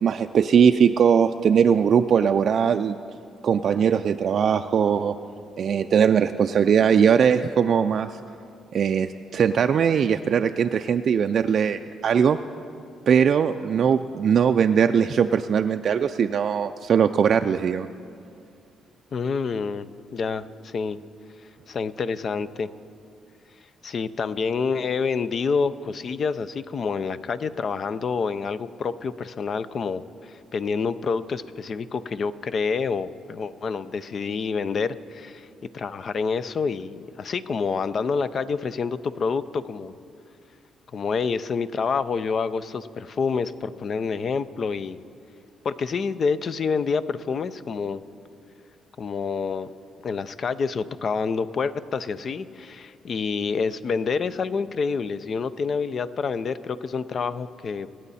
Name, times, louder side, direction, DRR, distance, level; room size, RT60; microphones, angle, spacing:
voice 1, 0.0-3.0 3.4-5.2 5.6-8.2 8.7-12.4 13.1-17.9, right 7 dB, 60° right, 7 dB, 0.4 m, -20 dB
voice 2, 19.1-21.0 21.7-22.7 23.8-35.5 35.7-39.9 40.9-45.0 45.6-48.0 49.0-49.7 50.0-57.9, left 5 dB, 50° left, 14 dB, 0.5 m, -27 dB
25.5 x 9.1 x 4.2 m, 2.4 s
cardioid pair, 90°, 0 cm